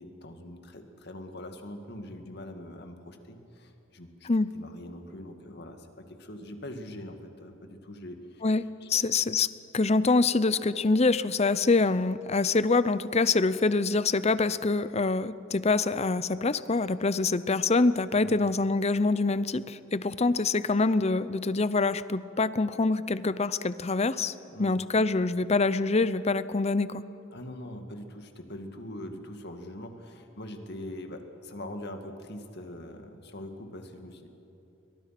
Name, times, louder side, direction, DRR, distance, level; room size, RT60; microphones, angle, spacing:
voice 1, 0.0-4.3 4.5-8.4 8.8-8.9 18.1-18.4 24.4-24.7 27.3-34.3, left 1 dB, 55° left, 5 dB, 2.2 m, -42 dB
voice 2, 8.4-9.5 9.7-24.3 24.6-27.0, left 3 dB, 30° left, 15 dB, 0.6 m, -25 dB
29.5 x 23.5 x 6.0 m, 2.9 s
head